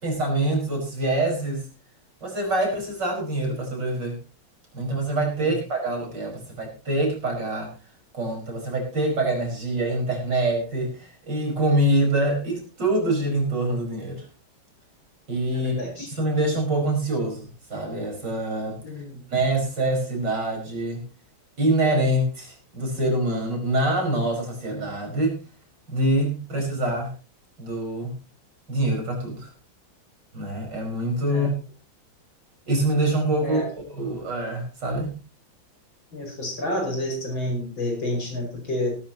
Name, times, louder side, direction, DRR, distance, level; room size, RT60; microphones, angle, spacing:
voice 1, 0.0-1.7 2.2-4.2 4.7-7.7 8.1-14.3 15.3-18.8 19.3-21.0 21.6-25.4 25.9-27.1 27.6-28.1 28.7-29.5 30.3-31.5 32.7-33.6 33.9-35.2, right 1 dB, 60° right, 1 dB, 5.8 m, -25 dB
voice 2, 15.5-16.1 18.8-19.2 31.3-31.5 33.4-33.7 36.1-39.0, left 1 dB, 70° left, 2 dB, 6.6 m, -29 dB
18.0 x 13.5 x 2.9 m, 0.32 s
omnidirectional pair, 2.2 m